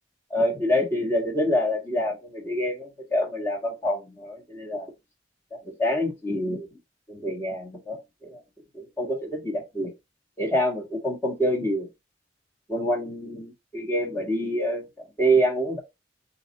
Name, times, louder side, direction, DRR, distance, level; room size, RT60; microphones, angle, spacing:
voice 1, 0.3-4.9 5.6-6.7 7.1-8.4 8.7-9.9 10.4-11.9 12.7-14.8 15.2-15.8, equal, 15° left, 1.7 m, -26 dB
4.2 x 3.1 x 4.0 m
head